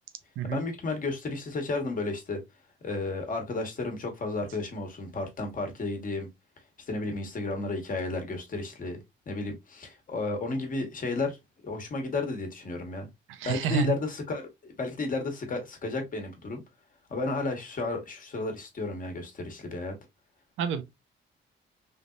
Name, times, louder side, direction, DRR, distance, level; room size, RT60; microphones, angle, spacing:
voice 1, 0.4-2.4 2.8-6.3 6.9-9.0 9.3-11.4 11.6-13.1 13.4-16.6 17.1-19.9, left 3 dB, 45° left, 1.2 m, -32 dB
voice 2, 13.3-14.0 20.6-20.8, right 8 dB, 85° right, 0.6 m, -29 dB
3.5 x 2.7 x 2.3 m
cardioid pair, 90°, 20 cm